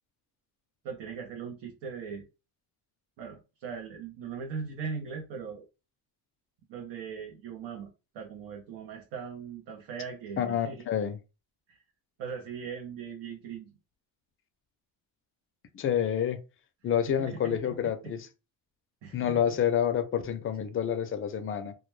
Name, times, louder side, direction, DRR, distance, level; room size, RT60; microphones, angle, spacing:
voice 1, 0.8-2.3 3.2-5.7 6.7-10.8 11.7-11.8 12.2-13.7 17.1-18.1 19.0-19.4, right 6 dB, 75° right, 0.7 m, -40 dB
voice 2, 10.4-11.2 15.7-16.4 16.8-18.3 19.1-21.7, left 9 dB, 30° left, 0.4 m, -28 dB
2.2 x 2.1 x 3.0 m
cardioid pair, 110°, 42 cm